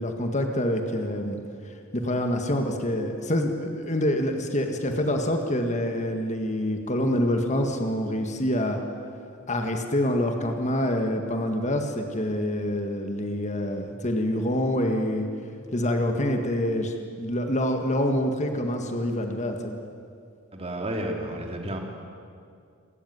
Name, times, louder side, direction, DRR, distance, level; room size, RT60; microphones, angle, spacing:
voice 1, 0.0-1.4 1.9-8.8 9.5-15.3 15.7-19.7, left 1 dB, 35° left, 4 dB, 1.8 m, -26 dB
voice 2, 20.5-21.8, right 1 dB, 30° right, 2 dB, 2.9 m, -31 dB
28.0 x 13.5 x 9.5 m, 2.3 s
head